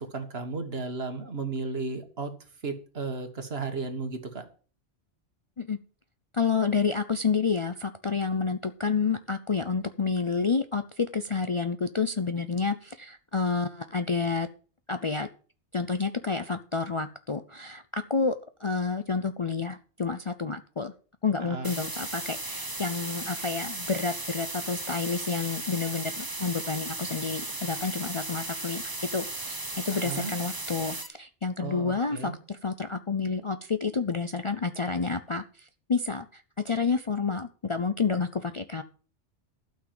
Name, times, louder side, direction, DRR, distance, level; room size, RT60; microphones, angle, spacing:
voice 1, 0.0-2.3 2.6-4.5 21.4-21.8 29.9-30.3 31.6-32.4, right 3 dB, 60° right, 7 dB, 1.9 m, -34 dB
voice 2, 6.3-14.5 14.9-15.3 15.7-20.9 21.2-29.6 29.8-35.4 35.9-38.8, left 4 dB, 35° left, 9 dB, 0.5 m, -29 dB
sound 1, 21.6-31.1, right 2 dB, 20° right, 1.2 m, -36 dB
12.0 x 6.1 x 7.5 m, 0.39 s
omnidirectional pair, 1.1 m